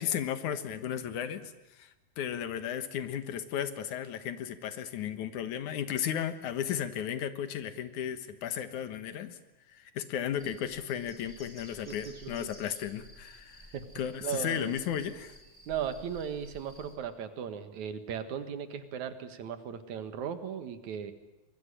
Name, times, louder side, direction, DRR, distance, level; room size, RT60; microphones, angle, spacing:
voice 1, 0.0-9.4 9.7-13.7 14.0-15.4, left 9 dB, 85° left, 11 dB, 2.9 m, -35 dB
sound 1, 10.4-17.0, equal, 5° left, 4.7 m, -53 dB
voice 2, 11.9-12.5 13.7-13.9 14.2-14.7 15.7-21.1, right 8 dB, 75° right, 10 dB, 3.0 m, -37 dB
24.0 x 21.0 x 10.0 m, 1.0 s
omnidirectional pair, 3.3 m